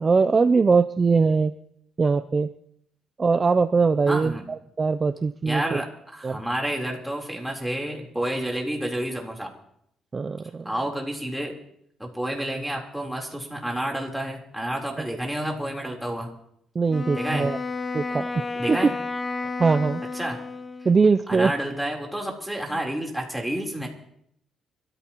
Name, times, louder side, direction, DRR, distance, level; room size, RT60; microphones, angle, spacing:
voice 1, 0.0-1.5 2.0-2.5 3.2-5.8 6.2-6.4 10.1-10.7 15.0-15.1 16.7-17.6 17.9-18.9 19.6-20.0 20.8-21.5, right 4 dB, 35° right, 10 dB, 0.5 m, -21 dB
voice 2, 4.1-4.5 5.5-9.5 10.6-11.5 12.0-16.4 17.1-17.5 18.6-18.9 20.1-20.4 21.3-23.9, right 1 dB, ahead, 0 dB, 3.8 m, -30 dB
Wind instrument woodwind instrument, 16.9-21.0, left 3 dB, 25° left, 0.8 m, -32 dB
25.5 x 14.0 x 3.0 m, 0.73 s
cardioid pair, 90°, 0 cm